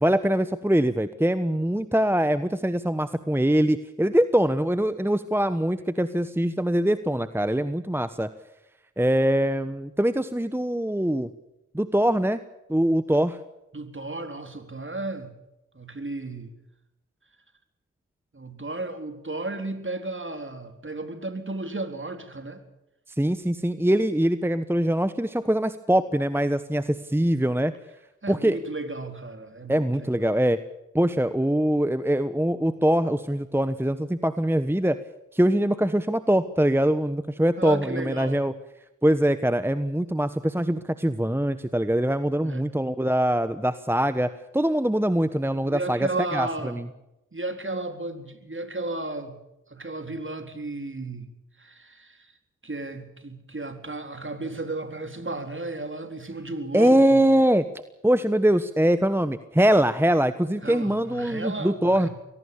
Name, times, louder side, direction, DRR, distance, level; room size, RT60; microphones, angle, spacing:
voice 1, 0.0-8.3 9.0-11.3 11.7-12.4 12.7-13.4 23.2-27.7 28.3-28.6 29.7-30.6 30.9-35.0 35.3-38.5 39.0-46.8 56.7-57.7 58.0-62.1, right 1 dB, 5° right, 12 dB, 1.2 m, -23 dB
voice 2, 13.7-15.3 15.7-16.5 18.3-22.6 28.2-30.4 37.6-38.4 42.4-42.7 45.7-46.8 47.3-49.4 49.7-51.3 51.6-52.3 52.6-57.2 60.6-62.1, right 2 dB, 40° right, 7 dB, 4.0 m, -34 dB
23.5 x 18.0 x 7.1 m, 0.92 s
cardioid pair, 40°, 31 cm